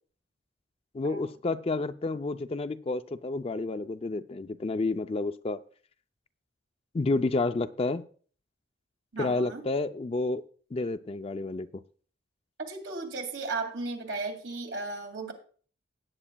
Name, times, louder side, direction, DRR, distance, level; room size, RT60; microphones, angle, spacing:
voice 1, 0.9-5.6 6.9-8.0 9.2-10.4 10.7-11.7, left 3 dB, 30° left, 10 dB, 0.4 m, -30 dB
voice 2, 9.1-9.6 12.7-15.3, right 3 dB, 70° right, 3 dB, 2.3 m, -35 dB
17.0 x 8.8 x 2.3 m, 0.43 s
head